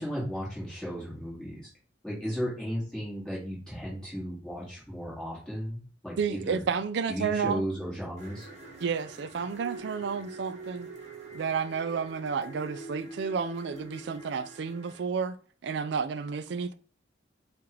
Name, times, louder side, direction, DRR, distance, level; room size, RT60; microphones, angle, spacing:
voice 1, 0.0-1.6 2.0-6.6 7.1-8.5, equal, 5° left, 2.0 m, -35 dB
voice 2, 6.2-7.7 8.8-10.9 11.3-15.4 15.6-16.7, right 6 dB, 60° right, 0.3 m, -31 dB
sound 1, 8.2-15.0, right 3 dB, 40° right, 1.1 m, -45 dB
5.8 x 2.5 x 3.1 m
head